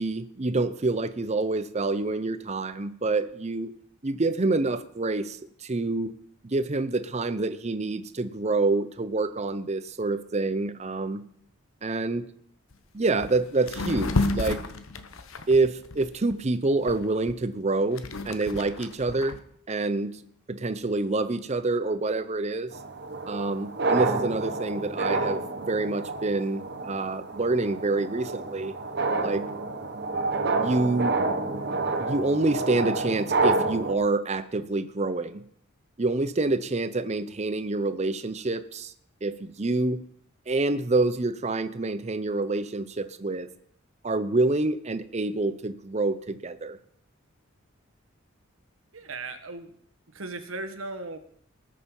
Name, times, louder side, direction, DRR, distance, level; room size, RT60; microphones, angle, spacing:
voice 1, 0.0-3.7 4.0-6.1 6.4-11.2 11.8-12.2 12.9-14.6 15.5-19.4 19.7-20.1 20.5-22.7 23.3-28.7 29.2-29.4 30.6-31.2 32.0-35.4 36.0-38.9 39.2-40.0 40.5-43.5 44.0-46.8, right 3 dB, 35° right, 12 dB, 0.7 m, -27 dB
sound 1, 12.7-12.8 13.2-13.4 13.7-16.4 16.9-19.4, left 2 dB, 80° left, 1.0 m, -31 dB
sound 2, 22.7-33.9, right 3 dB, 55° right, 1.2 m, -29 dB
voice 2, 48.9-49.7 50.1-51.2, right 3 dB, 80° right, 9 dB, 1.4 m, -37 dB
19.0 x 6.7 x 5.5 m, 0.65 s
head